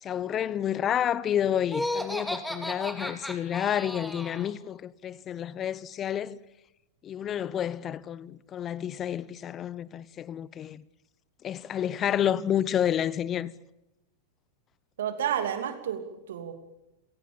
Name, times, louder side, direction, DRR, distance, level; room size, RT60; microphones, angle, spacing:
voice 1, 0.0-6.4 7.0-10.8 11.4-13.5, left 10 dB, 30° left, 0.8 m, -30 dB
Laughter, 1.7-4.5, left 1 dB, 5° left, 2.6 m, -34 dB
voice 2, 15.0-16.5, right 9 dB, 60° right, 2.8 m, -31 dB
29.0 x 18.0 x 8.8 m
figure-of-eight pair, 90°, 0 cm